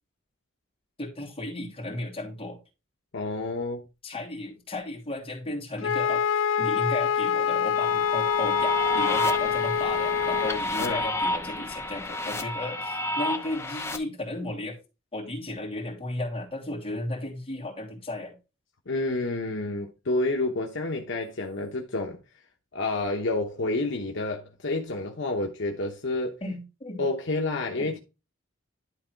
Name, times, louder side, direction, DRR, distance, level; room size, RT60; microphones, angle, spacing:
voice 1, 1.0-2.6 4.0-14.8 15.1-18.3 26.4-27.0 27.8-27.9, left 1 dB, 30° left, 2.9 m, -35 dB
voice 2, 3.1-3.8 10.8-11.0 18.9-22.2 22.7-26.4 27.0-28.0, left 2 dB, 65° left, 1.0 m, -29 dB
Wind instrument woodwind instrument, 5.8-10.6, left 8 dB, 80° left, 0.4 m, -25 dB
sound 1, 7.7-14.0, left 1 dB, 15° left, 0.9 m, -30 dB
11.5 x 3.9 x 4.5 m
head